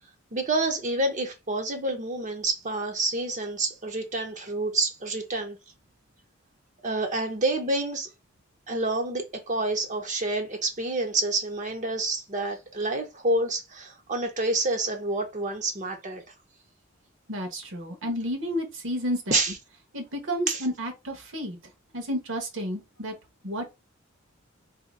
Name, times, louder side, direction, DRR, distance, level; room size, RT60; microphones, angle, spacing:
voice 1, 0.3-5.6 6.8-8.1 8.7-16.2 19.3-19.6 20.5-20.6, right 2 dB, 35° right, 0.6 m, -28 dB
voice 2, 17.3-19.3 19.9-21.6 21.9-23.1 23.4-23.7, equal, 65° right, 1.1 m, -31 dB
2.8 x 2.7 x 3.9 m
head